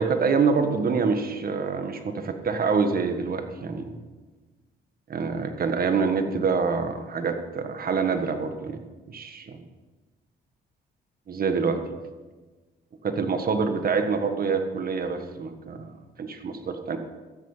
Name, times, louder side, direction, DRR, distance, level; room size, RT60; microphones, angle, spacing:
voice 1, 0.0-4.0 5.1-8.8 9.1-9.6 11.3-11.8 13.0-17.0, right 5 dB, 50° right, 7 dB, 1.6 m, -26 dB
13.0 x 9.8 x 5.7 m, 1.3 s
cardioid pair, 90°, 20 cm